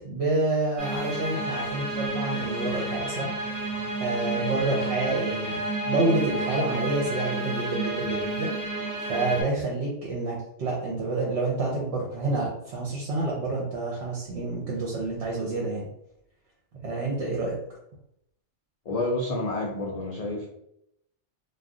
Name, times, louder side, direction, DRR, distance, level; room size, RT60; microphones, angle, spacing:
voice 1, 0.0-3.3 4.0-5.6 5.8-8.5 9.1-15.9 16.8-17.6, right 2 dB, 70° right, -3 dB, 1.0 m, -28 dB
sound 1, 0.8-9.4, right 2 dB, 15° right, 1.1 m, -31 dB
voice 2, 18.9-20.5, left 2 dB, 55° left, -2 dB, 0.4 m, -29 dB
2.4 x 2.1 x 3.6 m, 0.77 s
omnidirectional pair, 1.2 m